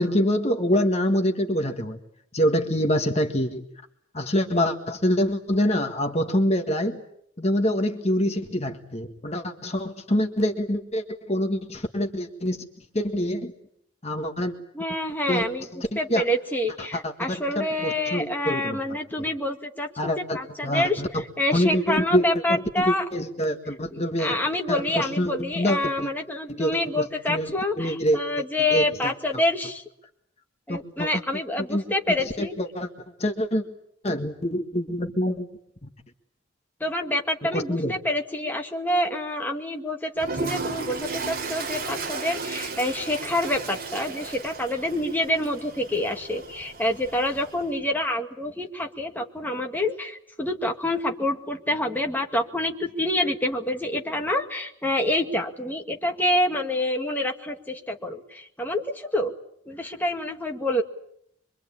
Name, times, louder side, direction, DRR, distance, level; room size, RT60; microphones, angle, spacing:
voice 1, 0.0-2.0 2.3-3.6 4.1-7.0 7.4-12.6 12.9-13.5 14.0-14.5 15.3-15.4 15.7-16.2 16.8-18.8 20.0-21.2 21.5-24.4 24.7-26.1 26.5-27.5 27.8-28.2 28.7-29.1 30.7-31.1 31.7-31.8 32.4-32.9 33.2-33.6 34.0-35.5 37.5-37.9, equal, 35° left, 5 dB, 1.7 m, -25 dB
voice 2, 14.7-15.6 16.0-23.0 23.9-29.8 30.7-32.6 36.8-59.3 59.7-60.8, left 1 dB, 10° left, 2 dB, 2.0 m, -27 dB
Toilet flush, 40.2-47.7, right 4 dB, 50° right, 3.4 m, -34 dB
25.0 x 24.5 x 8.7 m, 0.72 s
head